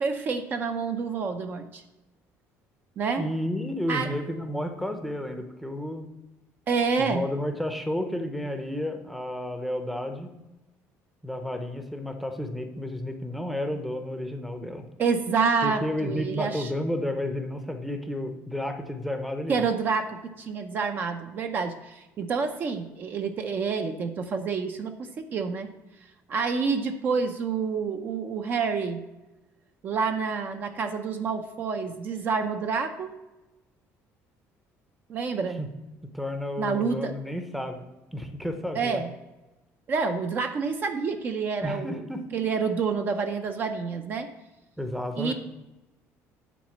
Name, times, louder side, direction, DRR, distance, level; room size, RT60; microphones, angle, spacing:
voice 1, 0.0-1.8 3.0-3.3 3.9-4.1 6.7-7.3 15.0-16.7 19.5-24.9 25.3-25.7 26.3-29.0 29.8-33.1 35.1-35.6 36.6-37.1 38.7-39.1 39.9-42.0 42.3-44.3 45.2-45.3, right 5 dB, 35° right, 7 dB, 0.6 m, -28 dB
voice 2, 3.2-6.1 7.0-10.3 11.2-14.9 15.6-19.7 35.5-35.7 36.1-37.8 38.1-39.0 41.6-42.2 44.8-45.3, left 1 dB, ahead, 6 dB, 0.7 m, -31 dB
9.2 x 4.1 x 7.2 m, 1.0 s
cardioid pair, 165°, 6 cm